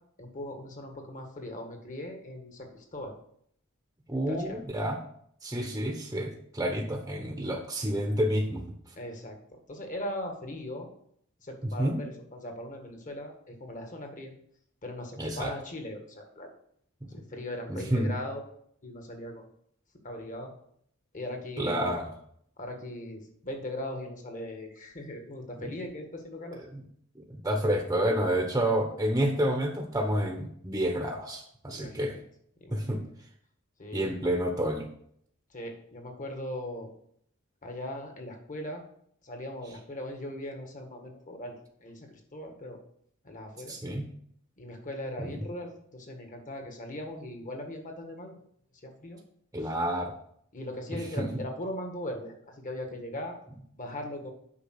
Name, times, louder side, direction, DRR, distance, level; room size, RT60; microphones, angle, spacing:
voice 1, 0.2-3.1 4.3-4.6 9.0-9.4 9.7-10.9 11.4-14.3 14.8-16.5 17.0-18.4 18.8-19.4 20.0-20.5 21.1-21.9 22.6-26.6 31.7-32.1 32.6-32.9 33.8-34.2 35.5-36.9 37.6-38.8 39.2-41.5 41.8-42.8 43.2-43.8 44.6-48.3 48.8-49.2 49.6-49.7 50.5-53.4 53.7-54.3, left 1 dB, 40° left, 3 dB, 1.8 m, -39 dB
voice 2, 4.1-5.0 5.4-8.6 11.6-12.0 15.2-15.5 17.7-18.1 21.6-22.0 25.6-25.7 26.7-26.8 27.3-32.2 32.7-33.0 33.9-34.9 43.7-44.1 45.2-45.4 49.5-50.1 51.2-51.3, right 1 dB, 15° right, 2 dB, 1.0 m, -29 dB
8.4 x 5.8 x 6.0 m, 0.67 s
head